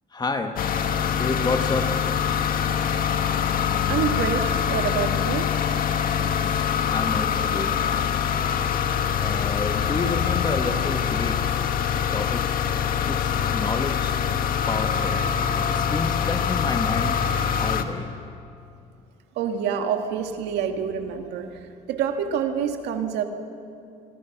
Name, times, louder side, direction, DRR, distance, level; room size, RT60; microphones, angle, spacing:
voice 1, 0.1-0.5 1.2-1.9 6.9-7.9 9.2-11.6 12.1-12.6 13.0-14.2 14.7-15.2 15.7-17.2 17.6-18.1, left 3 dB, 25° left, 5 dB, 1.8 m, -29 dB
sound 1, 0.6-17.8, left 8 dB, 60° left, 1.7 m, -24 dB
voice 2, 3.9-5.5 19.4-21.5 21.9-23.2, right 7 dB, 85° right, 5 dB, 2.1 m, -27 dB
26.0 x 25.0 x 6.1 m, 2.6 s
cardioid pair, 110°, 17 cm